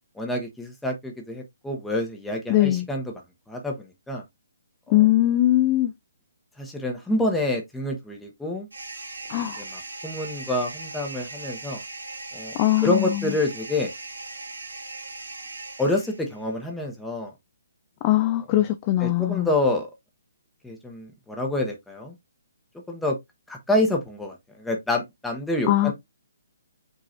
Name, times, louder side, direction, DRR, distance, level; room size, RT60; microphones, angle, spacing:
voice 1, 0.1-3.0 3.5-4.2 4.9-5.0 6.6-8.7 9.6-11.8 12.3-13.9 15.8-17.3 19.0-19.9 20.6-22.1 22.9-23.1 23.5-25.9, left 1 dB, 5° left, 0.9 m, -27 dB
voice 2, 2.5-2.9 4.9-5.9 9.3-9.6 12.6-13.3 18.0-19.5 25.6-25.9, left 15 dB, 30° left, 0.4 m, -21 dB
sound 1, 8.7-16.4, right 2 dB, 75° right, 1.1 m, -39 dB
5.3 x 3.0 x 2.6 m
figure-of-eight pair, 135°, 0 cm